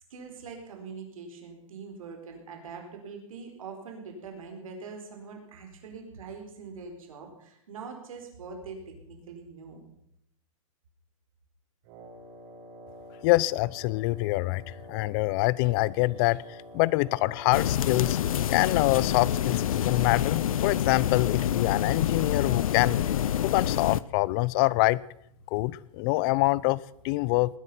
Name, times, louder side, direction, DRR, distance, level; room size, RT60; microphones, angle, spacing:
voice 1, 0.1-8.8 9.1-9.8, right 5 dB, 80° right, 4.4 m, -43 dB
Wind instrument woodwind instrument, 11.8-20.4, equal, 50° right, 5.4 m, -48 dB
voice 2, 13.2-14.6 14.9-16.4 16.7-18.2 18.5-23.0 23.4-25.0 25.5-27.6, left 21 dB, 40° left, 0.6 m, -25 dB
sound 1, 17.5-24.0, left 10 dB, 85° left, 0.6 m, -27 dB
20.0 x 10.5 x 5.7 m
hypercardioid pair, 135°, 17 cm